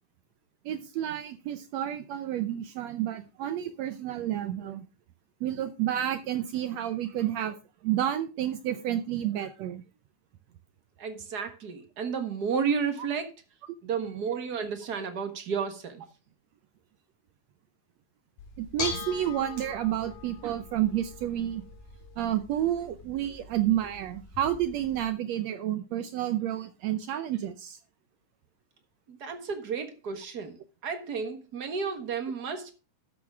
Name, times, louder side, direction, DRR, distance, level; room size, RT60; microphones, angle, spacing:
voice 1, 0.6-4.8 5.4-7.6 7.8-9.8 18.6-21.6 22.2-27.8, right 12 dB, 80° right, 1.6 m, -30 dB
voice 2, 11.0-13.2 13.8-16.0 29.1-30.6 30.8-32.7, right 6 dB, 45° right, 1.3 m, -32 dB
Bell / Dishes pots and pans, 18.4-25.0, left 6 dB, 85° left, 3.4 m, -41 dB
12.5 x 8.3 x 3.5 m
omnidirectional pair, 3.8 m